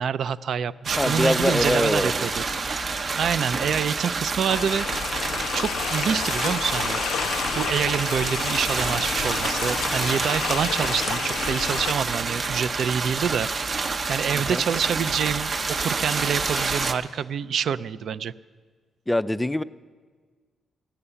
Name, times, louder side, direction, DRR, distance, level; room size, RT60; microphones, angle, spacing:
voice 1, 0.0-2.4 2.7-2.9 3.2-5.2 5.5-7.0 7.5-13.5 14.1-18.3, right 7 dB, 70° right, 16 dB, 0.4 m, -27 dB
sound 1, 0.8-16.9, right 4 dB, 40° right, 0.7 m, -28 dB
voice 2, 1.0-2.3 14.3-14.6 19.1-19.6, left 1 dB, 10° left, 14 dB, 0.3 m, -24 dB
sound 2, 4.5-11.9, left 9 dB, 85° left, 0.4 m, -30 dB
14.5 x 6.8 x 9.8 m, 1.5 s
cardioid pair, 115°, 0 cm